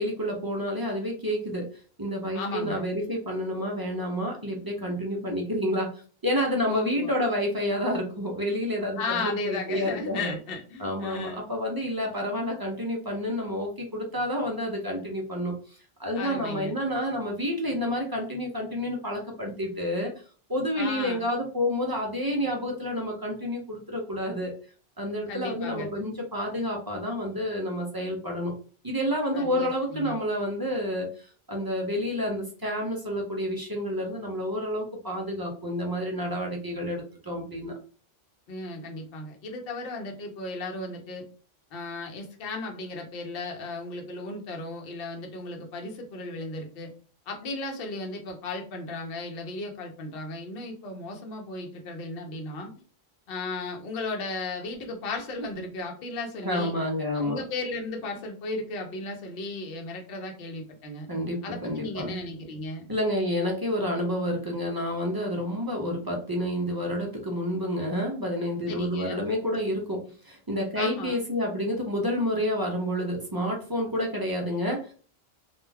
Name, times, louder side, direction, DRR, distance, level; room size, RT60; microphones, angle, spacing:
voice 1, 0.0-1.7 2.0-5.9 6.2-10.3 10.8-20.1 20.5-24.5 25.0-28.5 28.8-37.7 56.4-57.4 61.1-62.1 62.9-70.0 70.2-74.9, equal, 35° right, 0 dB, 0.4 m, -29 dB
voice 2, 2.3-2.8 6.7-7.1 9.0-11.5 16.1-16.7 20.8-21.3 25.3-26.0 29.3-30.2 38.5-41.2 41.7-46.9 47.3-52.7 53.3-56.7 57.1-61.1 61.4-62.9 68.7-69.2 70.8-71.1, left 2 dB, 65° left, 2 dB, 0.8 m, -35 dB
2.3 x 2.2 x 3.2 m, 0.40 s
omnidirectional pair, 1.0 m